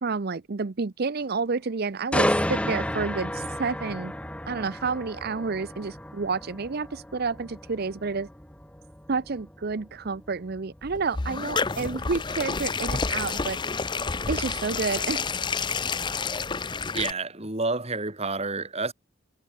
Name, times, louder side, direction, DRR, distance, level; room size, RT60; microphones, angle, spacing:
voice 1, 0.0-4.1 4.5-8.3 9.1-13.6 14.3-15.3, right 4 dB, 50° right, 0.6 m, -30 dB
sound 1, 2.1-16.0 16.4-16.6, left 1 dB, 5° left, 2.1 m, -33 dB
sound 2, 10.8-17.1, left 4 dB, 20° left, 0.6 m, -29 dB
voice 2, 16.9-18.9, right 3 dB, 30° right, 3.7 m, -29 dB
head